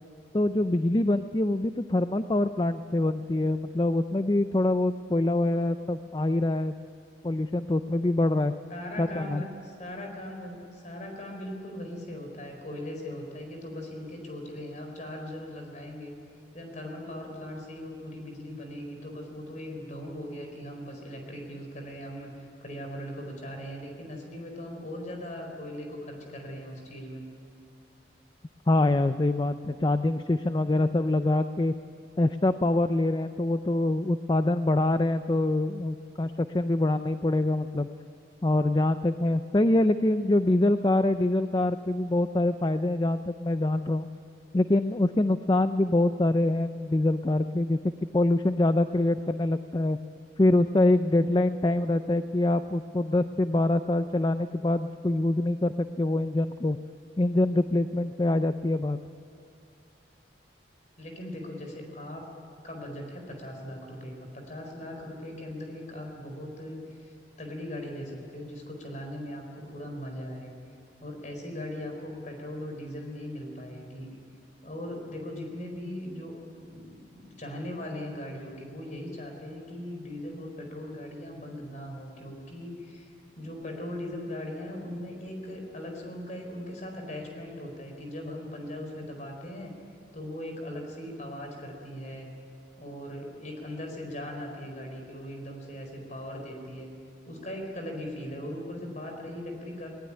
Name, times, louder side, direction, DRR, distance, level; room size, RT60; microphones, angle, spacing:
voice 1, 0.3-6.7 7.2-8.5 9.0-9.4 28.7-31.7 32.2-37.9 38.4-44.1 44.5-50.0 50.4-56.8 57.2-59.0, left 2 dB, 25° left, 11 dB, 0.4 m, -25 dB
voice 2, 8.7-16.1 16.5-27.2 61.0-62.3 62.6-70.5 71.0-74.1 74.6-76.3 76.6-89.7 90.1-92.3 92.8-96.9 97.3-99.9, left 1 dB, 40° left, 2 dB, 4.4 m, -39 dB
19.0 x 19.0 x 9.9 m, 2.5 s
head